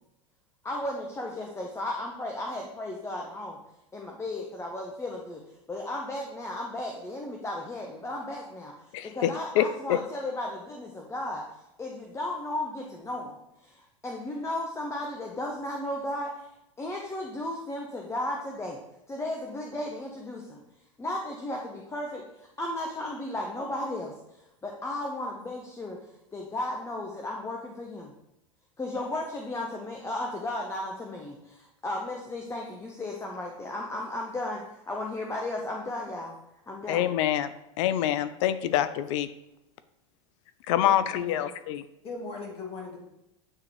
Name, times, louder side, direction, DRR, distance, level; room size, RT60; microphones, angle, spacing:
voice 1, 0.6-3.6 3.9-5.4 5.7-8.7 9.0-11.4 11.8-13.4 13.6-16.5 16.8-18.8 19.1-20.6 21.0-22.3 22.6-24.1 24.6-26.0 26.3-28.1 28.8-36.4 36.7-37.1, left 1 dB, 15° left, 0 dB, 0.8 m, -34 dB
voice 2, 8.9-10.0 36.9-39.3 40.7-41.8, left 11 dB, 65° left, 14 dB, 0.4 m, -26 dB
voice 3, 40.8-41.4 42.0-43.0, left 3 dB, 35° left, -1 dB, 2.0 m, -39 dB
8.7 x 3.7 x 3.0 m, 0.87 s
hypercardioid pair, 95°, 17 cm